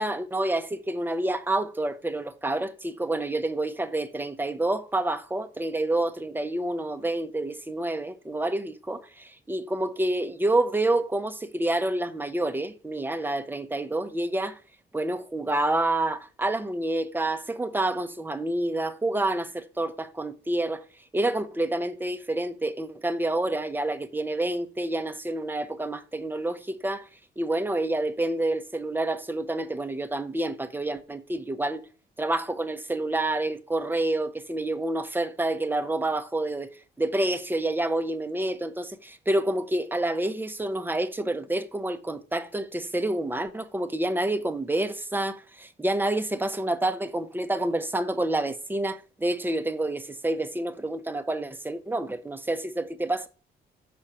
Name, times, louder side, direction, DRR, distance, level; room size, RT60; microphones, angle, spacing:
voice 1, 0.0-14.6 14.9-20.8 21.1-27.1 27.4-31.8 32.2-36.7 37.0-53.3, right 1 dB, 10° right, 1.0 m, -28 dB
6.4 x 6.1 x 5.8 m
cardioid pair, 90°, 20 cm